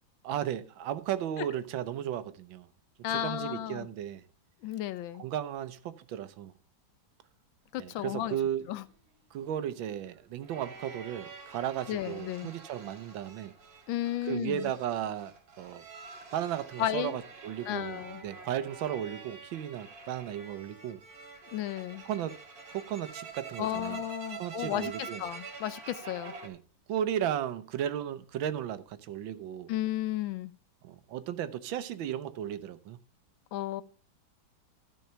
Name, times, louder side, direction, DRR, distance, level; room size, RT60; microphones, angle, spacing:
voice 1, 0.2-2.7 3.1-4.2 5.2-6.5 7.8-8.7 9.3-13.5 14.2-15.8 16.3-21.0 22.0-22.4 22.7-24.0 24.4-25.2 26.4-26.6 26.9-29.7 30.8-33.0, right 10 dB, 85° right, 1.5 m, -35 dB
voice 2, 3.0-3.9 4.6-5.2 7.7-8.4 8.7-8.8 11.9-12.5 13.9-14.7 16.8-17.2 17.7-18.2 21.5-22.0 23.6-26.3 29.7-30.5 33.5-33.8, left 13 dB, 85° left, 1.4 m, -33 dB
sound 1, 8.7-26.5, right 5 dB, 50° right, 2.0 m, -47 dB
12.5 x 5.6 x 5.6 m
omnidirectional pair, 2.1 m